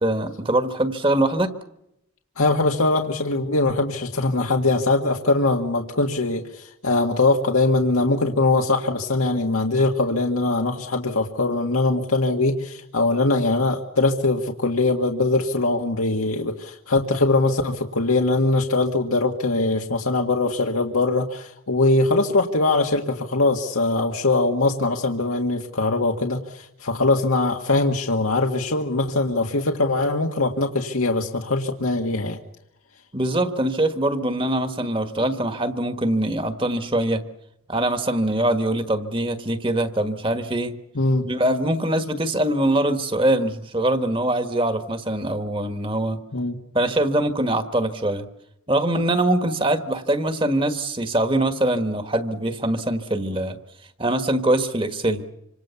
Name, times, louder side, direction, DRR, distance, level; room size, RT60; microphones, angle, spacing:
voice 1, 0.0-1.5 33.1-37.2 37.7-40.8 41.2-46.2 46.7-48.3 48.7-53.6 54.0-55.2, right 1 dB, 25° right, 10 dB, 1.5 m, -23 dB
voice 2, 2.4-32.4 41.0-41.3 46.3-46.6, left 2 dB, 85° left, 2 dB, 1.9 m, -22 dB
26.5 x 26.0 x 7.1 m, 0.83 s
head